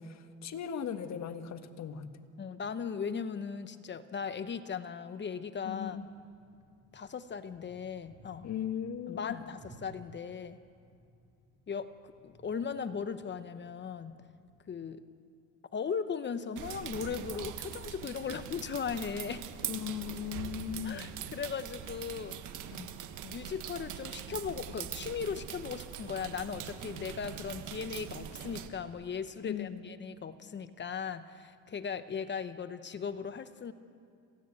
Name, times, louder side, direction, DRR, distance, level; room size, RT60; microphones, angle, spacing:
voice 1, 0.0-2.1 5.6-6.1 8.4-9.4 19.7-21.1 22.7-22.9 29.4-29.8, left 8 dB, 50° left, 8 dB, 1.6 m, -38 dB
voice 2, 2.4-6.0 6.9-8.5 9.1-10.6 11.7-11.9 12.2-14.2 14.7-15.0 15.7-19.4 20.8-22.3 22.6-22.8 23.2-33.7, left 6 dB, 30° left, 11 dB, 1.0 m, -38 dB
sound 1, 5.8-14.7, right 2 dB, 10° right, 3.7 m, -59 dB
sound 2, 16.6-28.7, right 9 dB, 60° right, 1.6 m, -42 dB
27.0 x 16.5 x 8.2 m, 2.4 s
cardioid pair, 110°, 34 cm